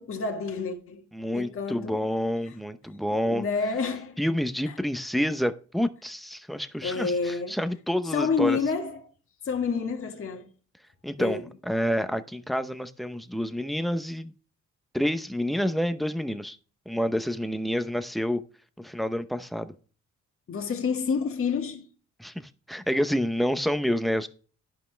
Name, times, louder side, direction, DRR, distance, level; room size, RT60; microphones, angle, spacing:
voice 1, 0.0-1.0 1.3-2.0 3.2-4.2 4.7-4.8 6.8-7.6 8.1-9.0 9.4-10.5 11.2-11.5 20.5-21.9, left 5 dB, 45° left, 1.7 m, -29 dB
voice 2, 1.1-3.5 4.2-8.6 11.0-14.3 14.9-16.6 16.9-18.4 18.8-19.7 22.2-24.3, equal, ahead, 0.7 m, -28 dB
11.5 x 5.3 x 3.4 m
cardioid pair, 90°, 30 cm